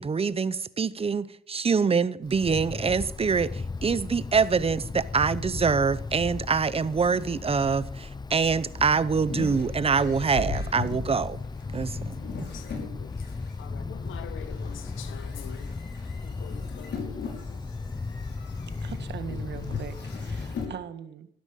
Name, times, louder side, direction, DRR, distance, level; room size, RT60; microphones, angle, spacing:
voice 1, 0.0-11.4 11.7-12.1, right 5 dB, 30° right, 0.8 m, -25 dB
Wind, 2.2-20.6, left 4 dB, 20° left, 0.9 m, -36 dB
sound 1, 8.7-13.5 14.1-20.8, left 4 dB, 65° left, 5.9 m, -38 dB
voice 2, 12.3-15.8 16.2-17.6, left 9 dB, 80° left, 1.4 m, -46 dB
voice 3, 18.8-21.3, right 8 dB, 60° right, 1.7 m, -40 dB
14.5 x 13.0 x 5.3 m
cardioid pair, 90°, 20 cm